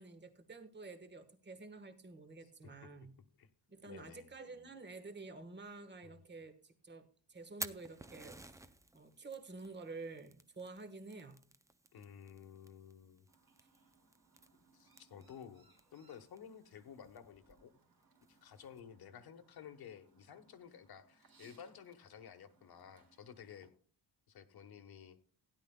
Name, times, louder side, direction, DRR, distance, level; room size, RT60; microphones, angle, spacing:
voice 1, 0.0-3.1 3.7-11.4, right 3 dB, 25° right, 8 dB, 1.3 m, -50 dB
voice 2, 2.4-2.7 3.4-3.5 3.9-4.3 6.0-6.2 11.9-13.3 14.5-17.7 18.3-23.7 24.3-25.3, left 8 dB, 55° left, 9 dB, 1.2 m, -54 dB
Fire, 7.4-18.8, right 1 dB, 10° right, 0.4 m, -54 dB
Chirp tweet, 13.3-23.7, right 4 dB, 55° right, 3.4 m, -70 dB
16.5 x 11.0 x 2.2 m, 0.42 s
wide cardioid pair, 165°, 43 cm